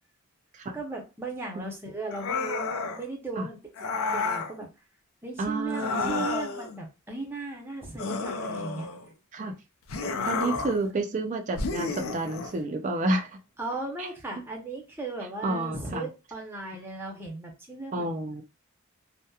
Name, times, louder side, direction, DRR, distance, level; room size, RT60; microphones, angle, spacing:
voice 1, 0.7-3.6 4.0-4.7 5.2-8.9 10.0-10.9 13.6-18.1, right 3 dB, 10° right, 0.7 m, -37 dB
sound 1, 2.1-3.0 3.8-4.5 5.7-6.7 8.0-9.1 9.9-10.8 11.6-12.6, left 4 dB, 80° left, 0.4 m, -31 dB
voice 2, 5.4-6.2 9.3-9.5 10.2-13.4 14.0-14.1 15.4-16.1 17.9-18.4, right 2 dB, 35° right, 0.4 m, -30 dB
2.7 x 2.1 x 2.3 m
head